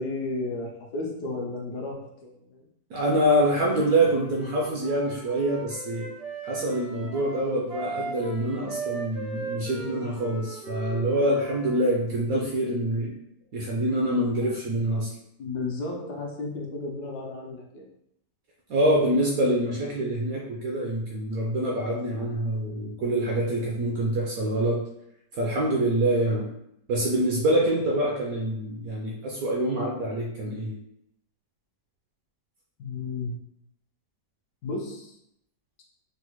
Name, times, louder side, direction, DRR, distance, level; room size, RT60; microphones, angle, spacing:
voice 1, 0.0-2.7 14.1-14.5 15.4-17.8 32.8-33.4 34.6-35.2, left 3 dB, 70° left, 0 dB, 1.1 m, -33 dB
voice 2, 2.9-6.1 6.4-13.1 13.5-15.1 18.7-24.8 25.3-26.5 26.9-30.8, right 1 dB, 70° right, -2 dB, 0.9 m, -25 dB
Wind instrument woodwind instrument, 3.8-11.8, right 3 dB, 35° right, 0.5 m, -38 dB
3.9 x 2.0 x 3.0 m, 0.77 s
omnidirectional pair, 1.9 m